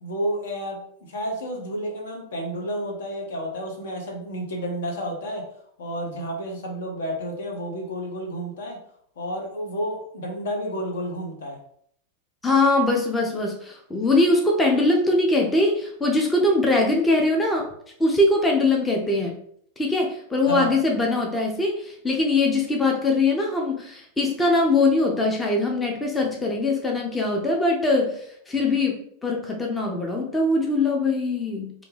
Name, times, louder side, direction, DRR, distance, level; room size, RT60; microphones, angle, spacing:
voice 1, 0.0-0.8 1.1-5.4 5.8-8.8 9.2-11.6 20.5-20.7, equal, 60° left, 1 dB, 0.7 m, -30 dB
voice 2, 12.4-17.7 18.0-19.4 19.8-31.7, left 2 dB, 10° left, 0 dB, 0.5 m, -22 dB
2.5 x 2.1 x 3.2 m, 0.66 s
figure-of-eight pair, 90°, 0 cm